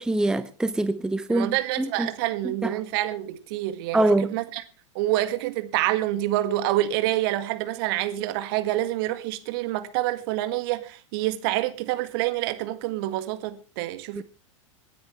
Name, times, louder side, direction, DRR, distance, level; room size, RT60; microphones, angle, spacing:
voice 1, 0.0-2.1 2.6-2.7 3.9-4.3 14.2-14.3, right 2 dB, 5° right, 0.7 m, -24 dB
voice 2, 1.3-4.6 5.0-14.2, right 15 dB, 45° right, 1.8 m, -27 dB
26.5 x 10.0 x 3.3 m
figure-of-eight pair, 95°, 16 cm